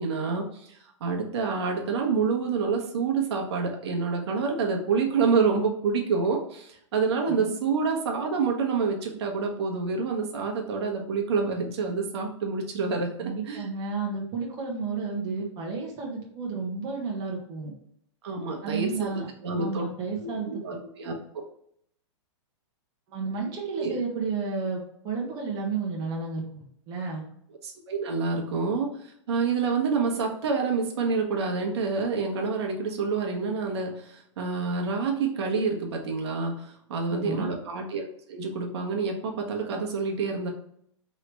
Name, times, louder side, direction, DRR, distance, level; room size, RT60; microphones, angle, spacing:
voice 1, 0.0-13.7 18.2-19.8 20.2-21.4 23.8-24.0 27.6-40.5, right 4 dB, 55° right, 2 dB, 1.1 m, -28 dB
voice 2, 13.2-17.7 18.6-19.3 19.5-20.8 23.1-27.2 37.1-37.5, right 4 dB, 25° right, -2 dB, 1.0 m, -32 dB
4.7 x 3.2 x 3.4 m, 0.68 s
hypercardioid pair, 155°, 16 cm